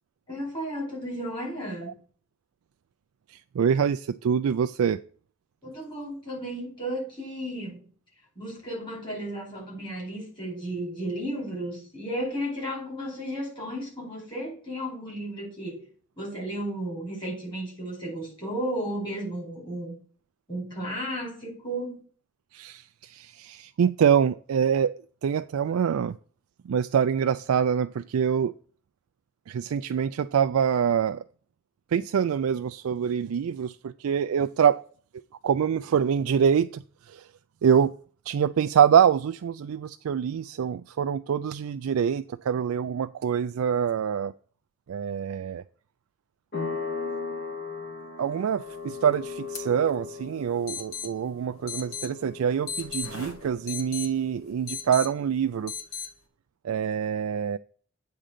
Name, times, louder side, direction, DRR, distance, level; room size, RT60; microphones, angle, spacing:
voice 1, 0.3-1.9 5.6-7.8 8.4-15.8 16.2-20.0 20.5-22.0, right 1 dB, 25° left, 4.5 m, -34 dB
voice 2, 3.5-5.0 22.5-24.9 25.2-26.2 26.7-28.5 29.5-31.2 31.9-34.8 35.4-37.2 37.6-37.9 38.3-44.3 44.9-45.6 48.2-55.7 56.6-57.6, right 8 dB, 90° right, 0.4 m, -25 dB
sound 1, 46.5-54.9, left 5 dB, 45° left, 2.4 m, -38 dB
sound 2, 49.5-49.6 49.9-50.0 50.7-51.1 51.7-52.1 52.7-54.1 54.7-55.1 55.7-56.1, left 6 dB, 85° left, 1.6 m, -35 dB
8.7 x 3.8 x 6.6 m
head